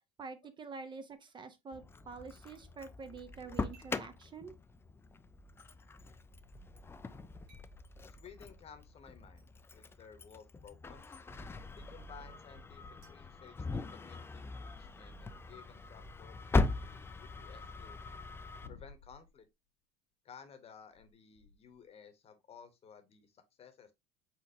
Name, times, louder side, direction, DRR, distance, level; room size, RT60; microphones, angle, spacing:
voice 1, 0.2-4.5, right 4 dB, 30° right, 0.6 m, -47 dB
Engine starting, 1.7-18.7, left 3 dB, 15° left, 0.4 m, -40 dB
sound 1, 3.7-4.1 5.6-5.7 7.5-7.8 9.4-9.5 11.1-11.3 13.0-14.1, right 1 dB, 75° right, 2.4 m, -65 dB
sound 2, 5.0-5.1 8.7-9.0 9.5-9.8 10.1-10.2 10.6-10.9 11.4-11.5 12.0-12.2 12.5-15.4 16.1-17.9 18.4-19.5 20.9-21.9, left 5 dB, 75° left, 0.8 m, -60 dB
voice 2, 8.1-11.2 11.8-18.0 18.7-19.5 20.2-23.9, left 7 dB, 40° left, 0.9 m, -56 dB
4.2 x 4.2 x 2.7 m
supercardioid pair, 100°, 16 cm